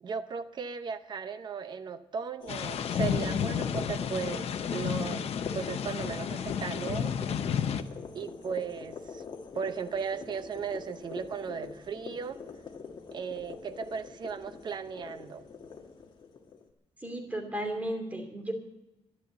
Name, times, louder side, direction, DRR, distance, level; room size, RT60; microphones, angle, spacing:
voice 1, 0.0-7.1 8.1-9.2 9.5-12.4 13.1-15.4, right 6 dB, 40° right, 9 dB, 0.8 m, -36 dB
sound 1, 2.4-16.6, left 5 dB, 45° left, 1.9 m, -43 dB
sound 2, 2.5-7.8, left 8 dB, 70° left, 0.8 m, -32 dB
voice 2, 17.0-18.5, right 1 dB, 15° right, 2 dB, 2.9 m, -34 dB
12.0 x 12.0 x 7.9 m, 0.93 s
wide cardioid pair, 150°, 11 cm